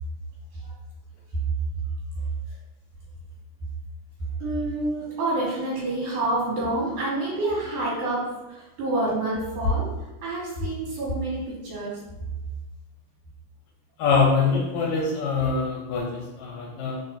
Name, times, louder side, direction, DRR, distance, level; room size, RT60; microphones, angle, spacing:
voice 1, 4.4-8.2 8.5-9.9 10.2-12.0, right 1 dB, 70° right, -7 dB, 2.9 m, -27 dB
voice 2, 14.0-17.0, left 4 dB, 75° left, -1 dB, 1.8 m, -24 dB
4.4 x 4.1 x 2.6 m, 1.0 s
omnidirectional pair, 3.5 m